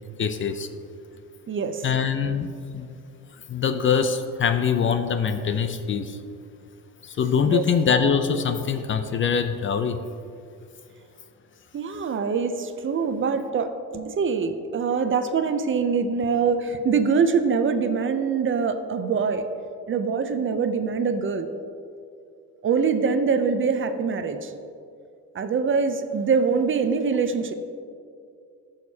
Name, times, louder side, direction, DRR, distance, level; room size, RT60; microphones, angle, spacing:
voice 1, 0.2-0.7 1.8-2.9 3.5-6.2 7.0-10.0, left 6 dB, 35° left, 9 dB, 0.5 m, -23 dB
voice 2, 1.5-1.9 7.4-7.7 11.7-19.5 19.9-21.5 22.6-24.5 25.3-27.5, right 5 dB, 40° right, 9 dB, 0.5 m, -24 dB
13.0 x 6.5 x 2.8 m, 2.4 s
cardioid pair, 110°, 33 cm